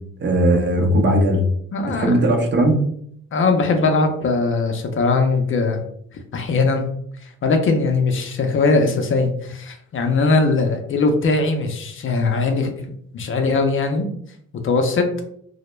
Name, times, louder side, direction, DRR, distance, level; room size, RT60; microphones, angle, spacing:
voice 1, 0.2-1.4 1.8-2.8, right 1 dB, 35° right, 1 dB, 0.6 m, -18 dB
voice 2, 1.7-2.2 3.3-5.8 6.3-6.9 7.2-12.7 13.1-14.1 14.6-15.1, left 3 dB, 45° left, 4 dB, 0.4 m, -20 dB
2.1 x 2.0 x 3.0 m, 0.67 s
cardioid pair, 90°, 30 cm